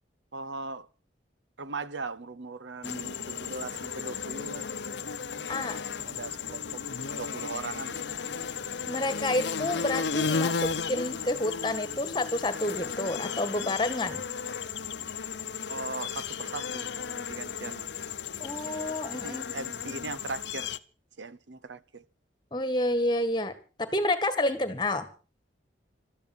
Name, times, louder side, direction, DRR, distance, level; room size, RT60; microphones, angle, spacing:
voice 1, 0.3-0.9 1.6-4.7 6.1-8.2 15.7-16.9 17.1-17.9 19.0-20.7 21.2-22.0, right 3 dB, 80° right, 0.9 m, -39 dB
sound 1, 2.8-20.8, left 6 dB, 70° left, 0.8 m, -34 dB
voice 2, 5.5-6.1 8.9-14.2 18.4-19.5 22.5-23.5 23.8-25.1, left 1 dB, 25° left, 1.9 m, -29 dB
15.5 x 13.0 x 6.3 m
head